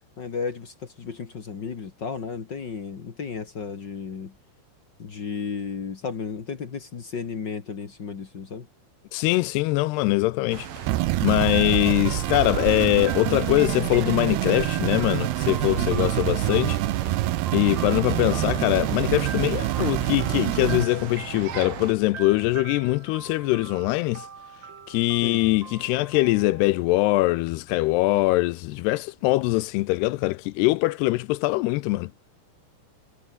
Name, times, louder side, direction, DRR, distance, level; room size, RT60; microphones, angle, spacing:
voice 1, 0.2-4.3 5.0-8.7 15.7-16.1 25.2-25.4, left 5 dB, 50° left, 1.3 m, -33 dB
voice 2, 9.1-10.7 11.2-16.8 17.5-24.3 24.9-32.1, left 19 dB, 85° left, 2.5 m, -23 dB
sound 1, 10.5-21.9, right 9 dB, 60° right, 3.8 m, -35 dB
sound 2, 10.9-20.9, right 17 dB, 75° right, 2.6 m, -26 dB
sound 3, 11.5-27.3, right 6 dB, 40° right, 1.8 m, -42 dB
omnidirectional pair, 5.0 m